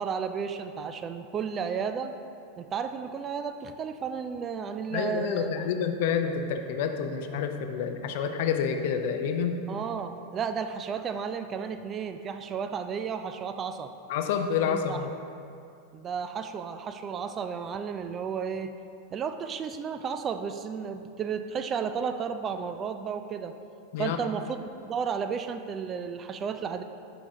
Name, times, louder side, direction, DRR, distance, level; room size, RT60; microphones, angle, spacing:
voice 1, 0.0-2.1 2.6-5.5 9.7-13.9 14.6-15.0 15.9-18.7 19.1-23.5 24.0-26.8, right 6 dB, 30° right, 8 dB, 0.3 m, -33 dB
voice 2, 4.9-9.7 14.1-15.1 23.9-24.2, left 7 dB, 65° left, 6 dB, 0.5 m, -28 dB
5.9 x 5.1 x 3.7 m, 2.5 s
hypercardioid pair, 100°, 0 cm